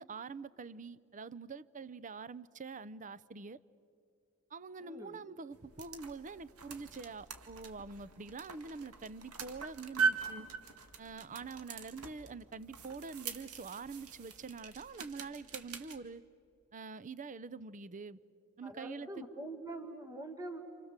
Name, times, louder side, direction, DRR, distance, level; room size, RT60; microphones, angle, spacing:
voice 1, 0.0-3.6 4.5-10.5 11.0-16.2 16.7-18.2 18.6-19.2, right 4 dB, 35° right, 18 dB, 0.6 m, -45 dB
voice 2, 4.8-5.2 18.6-20.6, right 2 dB, 15° right, 5 dB, 1.8 m, -44 dB
sound 1, 5.5-16.0, right 5 dB, 75° right, 2.0 m, -41 dB
29.0 x 28.0 x 7.4 m, 2.5 s
head